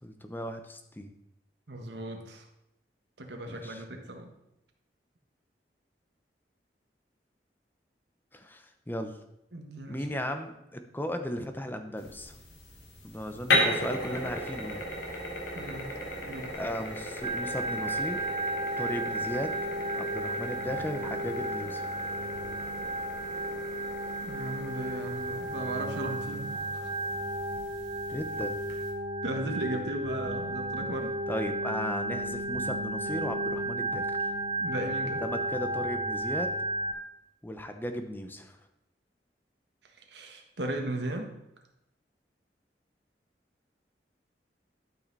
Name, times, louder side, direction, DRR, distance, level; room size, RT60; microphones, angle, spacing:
voice 1, 0.0-1.1 3.4-3.8 8.3-9.2 9.9-12.3 13.0-14.8 16.5-18.3 18.8-19.5 20.0-21.9 28.1-28.6 31.3-34.2 35.2-36.6 37.4-38.6, equal, 10° left, 6 dB, 0.8 m, -36 dB
voice 2, 1.7-2.5 3.2-4.3 9.5-10.1 15.5-15.9 16.2-16.7 24.2-26.9 29.2-31.2 34.6-35.2 40.1-41.3, right 1 dB, 75° right, 3 dB, 1.5 m, -36 dB
sound 1, 12.0-28.9, left 1 dB, 80° left, 2.3 m, -36 dB
Organ, 17.2-36.9, right 1 dB, 35° right, 0.9 m, -33 dB
12.0 x 5.7 x 4.1 m, 0.85 s
head